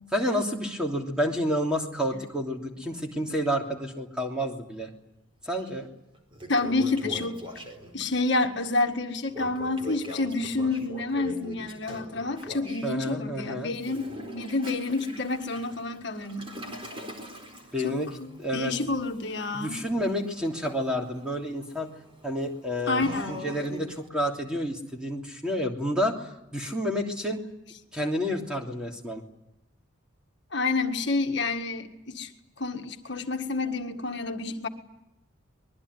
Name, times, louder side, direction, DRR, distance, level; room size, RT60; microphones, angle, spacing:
voice 1, 0.1-4.9 5.4-5.9 12.8-13.7 17.7-18.1 18.4-18.7 19.5-21.9 22.2-27.4 27.9-29.2, equal, 5° right, 0 dB, 3.0 m, -29 dB
Toilet flush, 5.6-5.7 6.1-8.1 9.3-12.9 13.7-24.1, left 1 dB, 25° right, 4.5 m, -42 dB
voice 2, 6.5-7.4 7.9-14.0 14.3-16.5 17.8-18.3 18.5-19.8 22.9-23.4 30.5-32.3 32.6-34.7, left 3 dB, 55° left, 4 dB, 1.8 m, -29 dB
24.0 x 21.5 x 9.7 m, 0.88 s
head